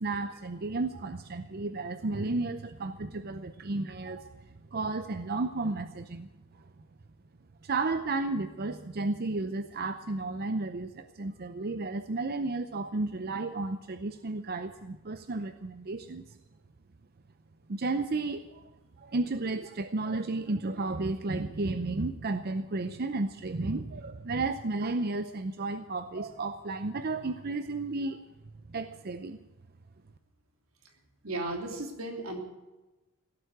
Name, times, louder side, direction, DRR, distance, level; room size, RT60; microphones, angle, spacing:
voice 1, 0.0-4.3 4.7-6.3 7.6-16.4 17.7-18.6 19.0-28.3 28.7-29.4, right 3 dB, 50° right, 9 dB, 0.6 m, -33 dB
voice 2, 31.2-32.4, right 2 dB, 85° right, 2 dB, 3.1 m, -35 dB
17.0 x 8.2 x 9.2 m, 1.1 s
head